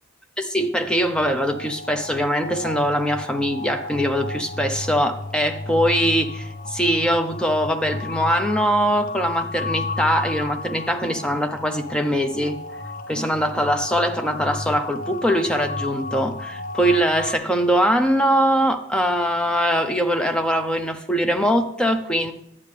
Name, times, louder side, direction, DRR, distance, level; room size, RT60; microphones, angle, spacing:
voice 1, 0.4-12.6 13.1-22.3, equal, 5° left, 7 dB, 0.6 m, -22 dB
sound 1, 0.7-17.4, left 3 dB, 40° left, 0.7 m, -33 dB
10.5 x 8.3 x 3.3 m, 0.80 s
head